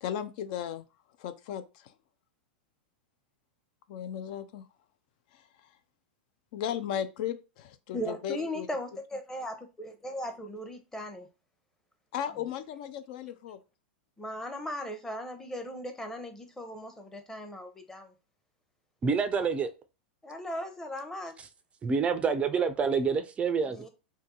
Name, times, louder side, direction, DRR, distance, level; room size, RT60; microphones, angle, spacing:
voice 1, 0.0-0.8 1.2-1.9 3.9-4.7 5.3-5.8 6.5-8.7 12.1-13.6, left 9 dB, 55° left, 0.3 m, -36 dB
voice 2, 7.9-11.3 14.2-18.1 20.2-21.3 23.7-23.9, equal, 10° left, 0.7 m, -38 dB
voice 3, 19.0-19.7 21.8-23.8, right 5 dB, 20° right, 0.4 m, -27 dB
2.6 x 2.6 x 3.7 m
hypercardioid pair, 100°, 5 cm